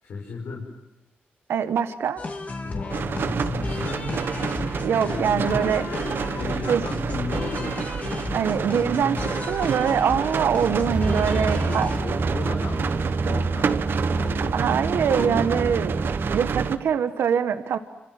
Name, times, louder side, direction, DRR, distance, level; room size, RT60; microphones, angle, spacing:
voice 1, 0.0-0.7 2.6-4.3 4.9-7.8 11.2-15.5, left 3 dB, 80° left, -2 dB, 5.3 m, -35 dB
voice 2, 1.5-2.2 4.8-5.8 6.7-6.8 8.3-11.9 14.5-17.8, right 8 dB, 80° right, 10 dB, 1.3 m, -24 dB
sound 1, 2.2-12.0, left 3 dB, 40° left, 3.6 m, -32 dB
sound 2, 2.9-16.8, right 6 dB, 65° right, 1.4 m, -29 dB
sound 3, 10.9-16.7, right 3 dB, 30° right, 2.4 m, -27 dB
28.0 x 27.0 x 7.8 m, 1.0 s
cardioid pair, 65°, 4 cm